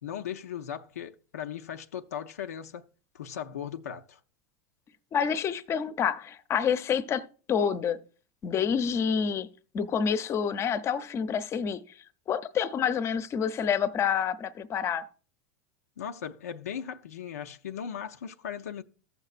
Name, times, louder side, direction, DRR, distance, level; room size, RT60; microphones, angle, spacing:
voice 1, 0.0-2.8 3.1-4.2 16.0-18.8, left 8 dB, 90° left, 0.5 m, -38 dB
voice 2, 5.1-8.0 8.4-9.5 9.7-11.8 12.3-15.1, left 7 dB, 35° left, 0.7 m, -28 dB
14.5 x 6.6 x 2.5 m
hypercardioid pair, 100°, 8 cm